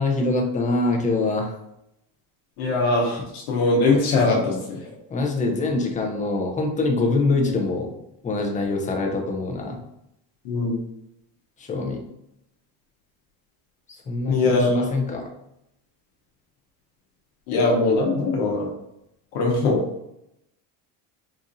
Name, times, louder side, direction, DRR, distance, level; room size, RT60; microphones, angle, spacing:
voice 1, 0.0-1.5 5.1-7.9 8.2-9.8 11.6-12.0 14.1-15.3, left 3 dB, 20° left, 1 dB, 0.6 m, -24 dB
voice 2, 2.6-4.8 10.4-10.7 14.3-14.9 17.5-18.7 19.3-19.8, left 3 dB, 80° left, -2 dB, 1.0 m, -21 dB
4.2 x 2.5 x 2.6 m, 0.81 s
cardioid pair, 120°, 42 cm